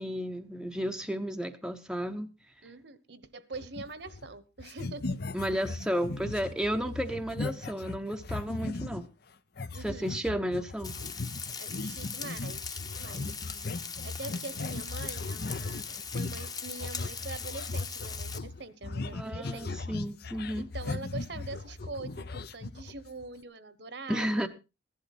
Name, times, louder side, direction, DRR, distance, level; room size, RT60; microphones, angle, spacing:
voice 1, 0.0-2.3 5.3-9.1 9.8-10.9 13.2-13.6 19.1-20.7 24.1-24.5, equal, 5° right, 6 dB, 0.8 m, -33 dB
voice 2, 2.6-5.2 9.7-10.2 11.6-13.7 14.0-19.7 20.6-24.5, right 3 dB, 55° right, 13 dB, 1.2 m, -44 dB
sound 1, 3.5-4.3 4.6-9.1 9.6-23.2, left 3 dB, 55° left, 0.7 m, -38 dB
Frying (food), 10.8-18.4, left 5 dB, 20° left, 1.0 m, -40 dB
15.5 x 11.5 x 4.2 m, 0.30 s
head